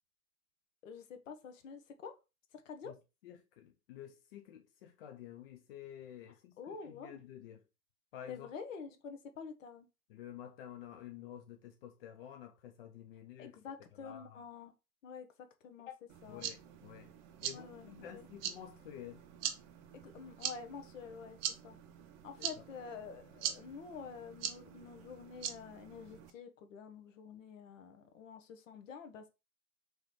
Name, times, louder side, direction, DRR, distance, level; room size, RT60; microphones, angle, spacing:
voice 1, 0.8-2.1 2.5-2.9 6.6-7.2 8.3-9.9 13.4-14.7 15.0-15.3 15.6-15.9 16.2-16.5 17.5-18.3 19.9-21.4 21.6-21.8 22.2-29.3, left 6 dB, 60° left, 1.0 m, -48 dB
voice 2, 3.2-7.6 8.1-8.5 10.1-13.6 14.0-14.4 15.9-16.0 16.3-17.1 17.4-19.2, left 10 dB, 40° left, 0.5 m, -50 dB
sound 1, 16.1-26.3, right 9 dB, 35° right, 0.6 m, -44 dB
4.7 x 3.1 x 3.2 m
figure-of-eight pair, 105°, 44 cm